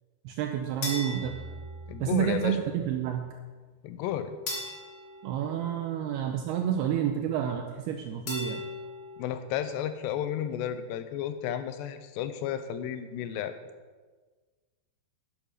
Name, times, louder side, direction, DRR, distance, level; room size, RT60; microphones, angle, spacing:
voice 1, 0.2-1.4 2.0-3.3 5.2-8.6, right 10 dB, 80° right, 4 dB, 2.6 m, -29 dB
sound 1, 0.8-2.3 4.5-6.3 8.3-9.4, left 2 dB, 45° left, 3.9 m, -39 dB
sound 2, 1.2-3.6, right 4 dB, 35° right, 1.6 m, -46 dB
voice 2, 1.9-2.6 3.8-4.3 9.2-13.5, left 10 dB, 90° left, 10 dB, 3.0 m, -32 dB
10.5 x 8.9 x 6.5 m, 1.4 s
omnidirectional pair, 4.8 m